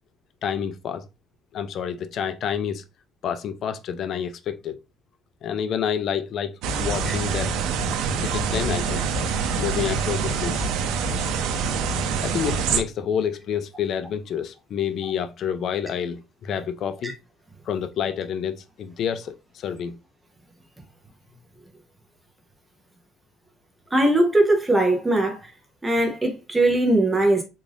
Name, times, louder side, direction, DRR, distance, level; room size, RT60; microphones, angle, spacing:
voice 1, 0.4-1.1 1.5-2.8 3.2-4.8 5.4-7.5 8.2-9.1 9.5-10.6 12.2-17.1 17.7-20.0, left 8 dB, 45° left, 0.3 m, -28 dB
sound 1, 6.6-12.8, right 5 dB, 75° right, 0.5 m, -25 dB
voice 2, 23.9-25.4 25.8-27.4, right 1 dB, 10° right, 0.6 m, -20 dB
3.7 x 2.5 x 3.3 m
cardioid pair, 175°, 0 cm